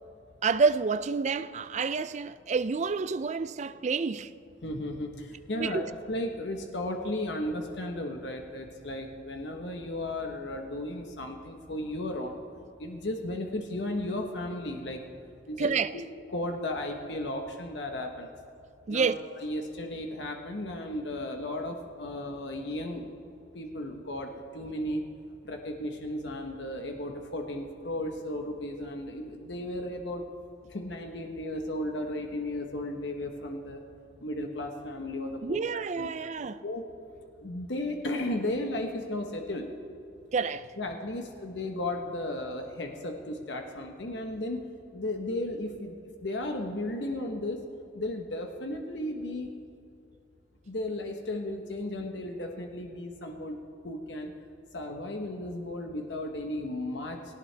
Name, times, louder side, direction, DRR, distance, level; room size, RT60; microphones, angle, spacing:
voice 1, 0.4-4.3 5.6-5.9 15.6-16.0 18.9-19.2 35.4-36.6 40.3-40.7, right 5 dB, 40° right, 0.4 m, -28 dB
voice 2, 4.6-12.4 12.8-15.0 15.5-16.0 16.3-18.3 18.9-19.1 19.4-23.1 23.5-25.0 25.4-30.2 30.7-33.8 34.2-36.1 36.4-36.8 37.4-39.7 40.8-44.7 44.9-47.6 47.9-49.5 50.7-54.3 54.7-57.2, left 1 dB, 75° left, 1.1 m, -35 dB
18.0 x 18.0 x 3.4 m
head